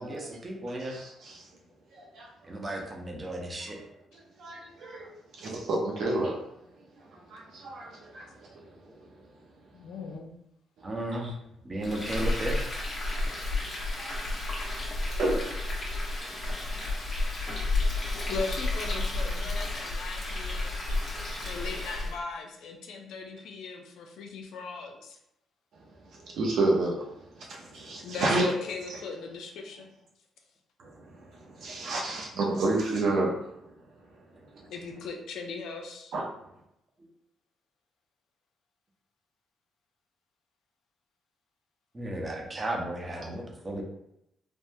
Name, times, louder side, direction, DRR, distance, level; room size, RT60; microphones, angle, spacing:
voice 1, 0.0-1.0 2.4-3.8 8.8-9.1 10.8-11.3 11.6-12.6 27.8-27.9 37.0-37.1 41.9-43.8, right 1 dB, 30° right, 0.8 m, -35 dB
voice 2, 0.8-1.4 1.9-2.3 4.4-6.4 7.0-8.7 9.1-9.2 11.1-11.3 13.0-13.7 14.0-14.2 14.6-16.7 17.7-18.3 20.9-21.5 26.1-28.5 28.9-29.0 30.8-33.7 36.1-36.2, right 2 dB, 75° right, 0.6 m, -32 dB
voice 3, 9.7-10.3 11.3-11.5 18.3-20.7 21.2-25.2 28.0-29.9 34.7-36.1, left 4 dB, 80° left, 0.5 m, -39 dB
Frying (food), 11.8-22.2, left 2 dB, 40° left, 1.0 m, -31 dB
3.5 x 2.1 x 2.6 m
cardioid pair, 80°, 0 cm